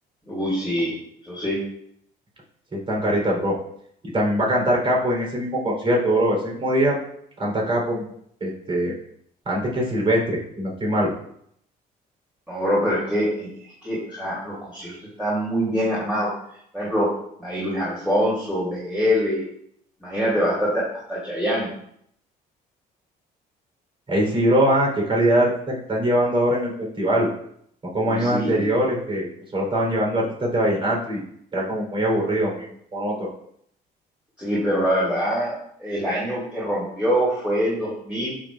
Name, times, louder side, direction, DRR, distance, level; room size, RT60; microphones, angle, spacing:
voice 1, 0.2-0.9 1.2-1.6 12.5-16.3 16.7-17.1 17.4-19.4 20.0-20.8 21.1-21.7 28.0-28.7 34.4-35.5 35.8-38.3, equal, 5° right, -9 dB, 3.2 m, -24 dB
voice 2, 2.7-3.5 4.1-7.0 7.4-8.1 8.4-8.9 9.5-11.1 24.1-27.3 27.9-29.3 29.5-31.2 31.5-33.3, right 1 dB, 35° right, -2 dB, 4.0 m, -22 dB
12.5 x 6.7 x 2.5 m, 0.70 s
cardioid pair, 110°, 17 cm